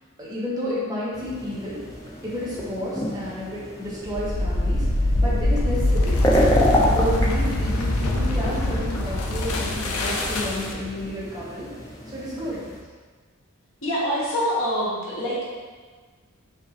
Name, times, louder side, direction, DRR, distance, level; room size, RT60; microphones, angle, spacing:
voice 1, 0.2-1.8 2.2-4.8 5.2-6.2 6.8-11.7 12.1-12.6, left 1 dB, 20° right, -8 dB, 0.9 m, -31 dB
sound 1, 1.1-12.8, equal, 15° left, 0.6 m, -29 dB
sound 2, 4.0-10.9, left 1 dB, 80° left, 0.5 m, -23 dB
voice 2, 13.8-15.4, equal, 60° left, -6 dB, 1.1 m, -25 dB
5.4 x 2.6 x 2.8 m, 1.4 s
head